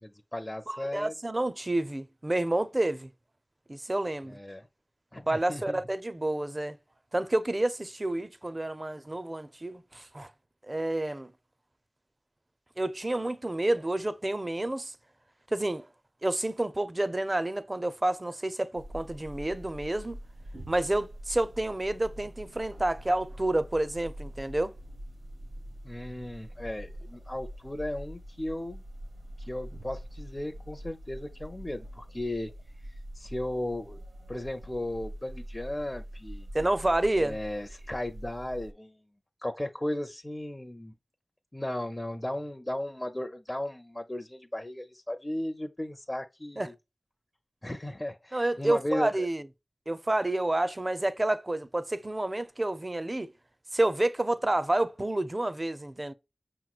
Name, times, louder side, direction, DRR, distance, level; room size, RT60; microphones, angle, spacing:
voice 1, 0.0-1.1 4.3-4.7 5.1-5.8 25.8-28.8 29.4-32.5 32.8-34.0 34.3-36.5 37.2-38.9 39.4-40.9 41.5-46.7 47.6-49.3, left 1 dB, 25° left, 0.5 m, -36 dB
voice 2, 0.7-3.1 3.7-4.4 5.3-6.8 7.1-10.3 10.7-11.3 12.8-14.9 15.5-15.9 16.2-20.2 20.7-24.7 36.5-37.4 46.6-46.7 48.3-49.5 49.9-53.3 53.7-56.1, right 1 dB, 35° right, 0.5 m, -29 dB
sound 1, 18.8-38.7, equal, 70° right, 1.1 m, -44 dB
5.6 x 3.0 x 2.4 m
cardioid pair, 45°, 0 cm